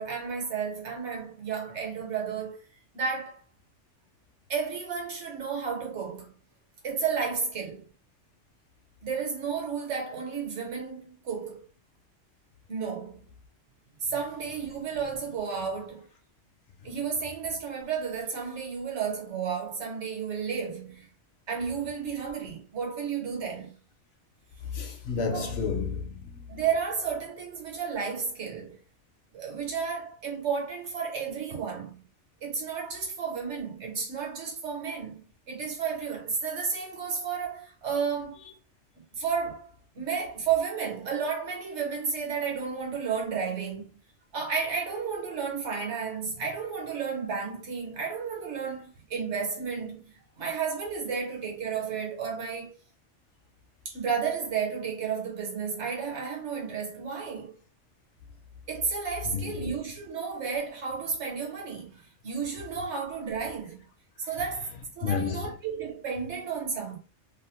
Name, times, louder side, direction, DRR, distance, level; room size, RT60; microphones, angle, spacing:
voice 1, 0.0-2.6 2.9-3.4 4.5-6.4 6.8-7.8 9.0-11.6 12.7-13.2 14.0-16.0 16.8-21.1 21.5-23.8 25.3-25.6 26.5-28.8 29.3-32.0 32.4-35.2 35.5-38.4 39.2-39.7 39.9-44.0 44.3-52.8 53.8-57.6 58.7-63.8 64.2-67.0, right 6 dB, 70° right, 1.2 m, -32 dB
voice 2, 24.7-26.2 59.3-59.5 65.0-65.4, left 5 dB, 65° left, 0.7 m, -30 dB
2.7 x 2.0 x 3.0 m
omnidirectional pair, 1.2 m